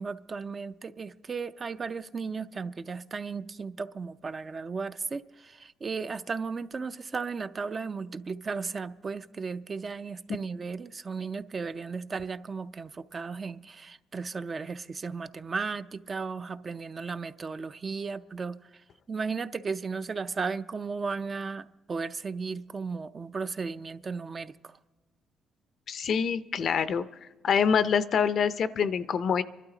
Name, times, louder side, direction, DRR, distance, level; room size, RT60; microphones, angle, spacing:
voice 1, 0.0-18.6 19.1-24.7, right 4 dB, 35° right, 11 dB, 0.4 m, -35 dB
voice 2, 25.9-27.0 27.4-29.4, left 7 dB, 60° left, 14 dB, 0.5 m, -25 dB
26.0 x 12.0 x 3.8 m, 1.3 s
cardioid pair, 90°, 0 cm